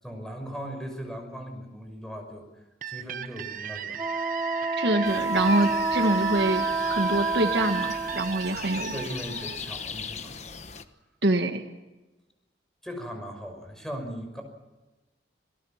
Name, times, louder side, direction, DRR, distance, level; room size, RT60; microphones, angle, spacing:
voice 1, 0.0-4.0 8.8-10.4 12.8-14.4, equal, 5° left, 4 dB, 5.7 m, -38 dB
sound 1, 2.8-10.4, right 8 dB, 45° right, 0.8 m, -37 dB
Wind instrument woodwind instrument, 4.0-8.4, right 3 dB, 20° right, 0.7 m, -28 dB
voice 2, 4.8-8.9 11.2-11.6, right 1 dB, 70° right, 6 dB, 1.7 m, -25 dB
sound 2, 5.0-10.8, left 6 dB, 40° left, 1.2 m, -40 dB
27.5 x 18.0 x 7.3 m, 1.1 s
head